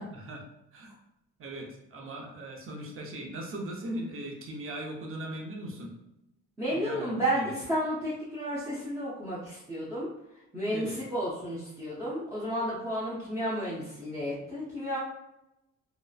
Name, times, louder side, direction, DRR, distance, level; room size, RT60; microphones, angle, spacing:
voice 1, 1.4-5.9 6.7-7.5 10.7-11.0, right 1 dB, 45° right, 0 dB, 0.7 m, -39 dB
voice 2, 6.6-10.1 10.3-15.0, equal, 10° right, -9 dB, 0.7 m, -32 dB
2.9 x 2.0 x 2.3 m, 0.88 s
cardioid pair, 90°, 30 cm